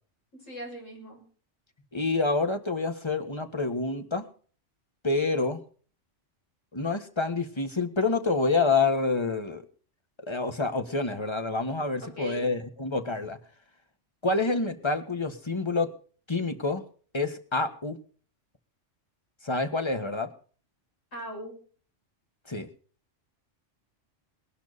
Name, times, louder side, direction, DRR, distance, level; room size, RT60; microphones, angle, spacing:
voice 1, 0.3-1.3 12.0-12.5 21.1-21.6, equal, 90° left, 1 dB, 7.1 m, -40 dB
voice 2, 1.9-4.3 5.0-5.6 6.7-9.6 10.3-13.4 14.2-15.9 16.3-16.8 17.1-18.0 19.4-20.3 22.5-22.7, left 3 dB, 25° left, 8 dB, 1.6 m, -27 dB
20.0 x 11.5 x 4.1 m, 0.42 s
omnidirectional pair, 1.3 m